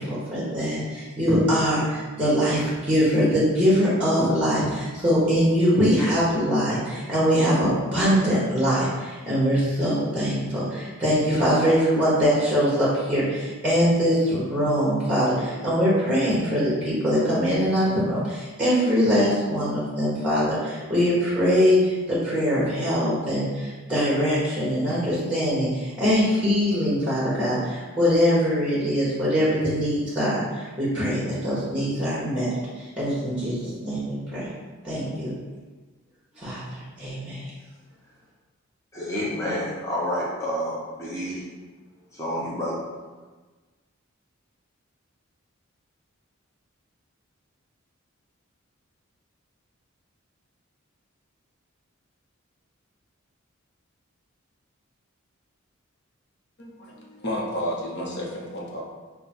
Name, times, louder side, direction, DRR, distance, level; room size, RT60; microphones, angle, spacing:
voice 1, 0.0-32.6 33.0-33.6 33.8-34.5 34.8-35.3 36.4-37.4, equal, 5° right, -8 dB, 1.2 m, -22 dB
voice 2, 38.9-41.5 42.1-42.8, equal, 15° left, -7 dB, 0.8 m, -29 dB
voice 3, 56.6-58.8, equal, 55° left, -2 dB, 0.9 m, -31 dB
5.4 x 2.2 x 4.3 m, 1.3 s
head